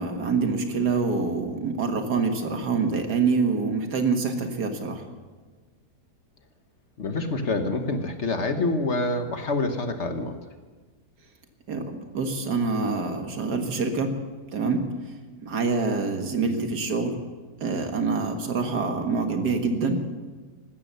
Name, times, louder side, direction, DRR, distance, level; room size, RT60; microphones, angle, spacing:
voice 1, 0.0-5.0 11.7-14.2 14.5-14.8 15.4-17.2 17.6-20.0, right 4 dB, 85° right, 5 dB, 2.2 m, -26 dB
voice 2, 7.0-10.4, left 2 dB, 45° left, 7 dB, 1.4 m, -26 dB
16.0 x 13.0 x 6.8 m, 1.4 s
omnidirectional pair, 1.7 m